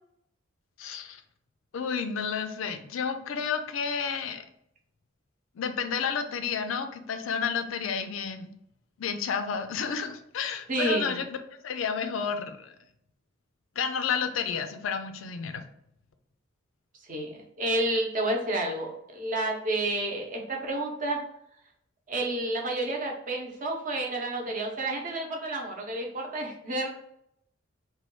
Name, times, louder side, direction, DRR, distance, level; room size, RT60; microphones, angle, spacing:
voice 1, 0.8-1.2 1.7-4.4 5.6-8.5 9.0-11.3 11.6-12.7 13.8-15.6, left 6 dB, 85° left, 8 dB, 0.4 m, -31 dB
voice 2, 10.7-11.2 17.1-21.2 22.1-26.9, right 1 dB, 45° right, 1 dB, 0.7 m, -30 dB
3.1 x 2.2 x 3.0 m, 0.75 s
head